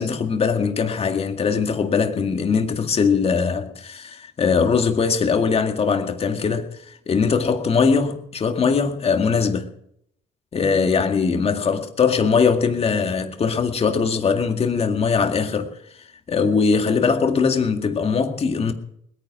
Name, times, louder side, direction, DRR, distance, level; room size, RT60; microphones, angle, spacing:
voice 1, 0.0-9.7 10.5-15.7 16.3-18.7, left 5 dB, 35° left, 2.0 m, -21 dB
20.5 x 9.7 x 6.1 m
cardioid pair, 110°, 17 cm